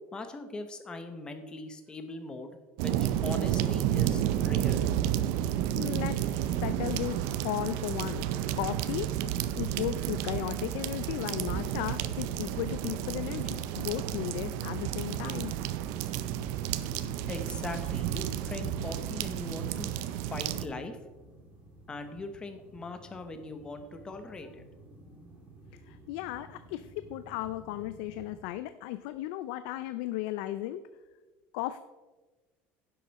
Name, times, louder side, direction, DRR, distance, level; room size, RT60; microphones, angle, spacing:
voice 1, 0.1-4.9 17.3-19.9 20.3-21.0 21.9-24.6, left 3 dB, 15° left, 8 dB, 0.9 m, -40 dB
sound 1, 2.8-20.6, right 11 dB, 70° right, 0.6 m, -31 dB
voice 2, 5.7-8.2 8.6-9.1 9.6-15.5 25.9-30.8 31.5-31.8, left 14 dB, 80° left, 12 dB, 0.4 m, -35 dB
sound 2, 8.7-28.4, right 1 dB, 30° right, 2.9 m, -52 dB
10.5 x 7.7 x 4.1 m, 1.2 s
cardioid pair, 160°, 5 cm